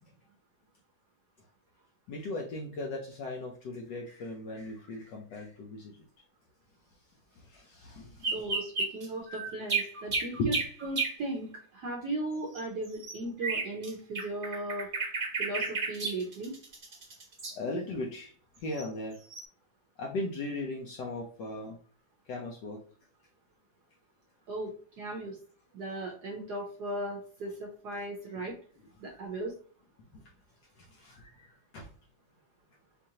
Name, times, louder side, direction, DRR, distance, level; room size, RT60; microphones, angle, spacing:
voice 1, 2.1-5.9 7.3-8.3 10.3-10.5 17.5-18.3 18.6-19.2 20.0-21.8 22.3-22.8 29.1-29.2 30.1-30.2 30.8-31.5 31.7-31.9, left 2 dB, 75° left, 1 dB, 1.0 m, -37 dB
sound 1, 8.2-11.1 12.5-13.9 14.2-17.5 18.8-18.9 19.3-19.4, right 4 dB, 30° right, 1.0 m, -32 dB
voice 2, 8.3-10.6 10.8-14.9 15.4-16.5 24.5-25.4 25.7-28.5 29.0-29.5, right 1 dB, 70° right, 0 dB, 1.0 m, -37 dB
4.6 x 2.5 x 2.7 m, 0.42 s
omnidirectional pair, 2.4 m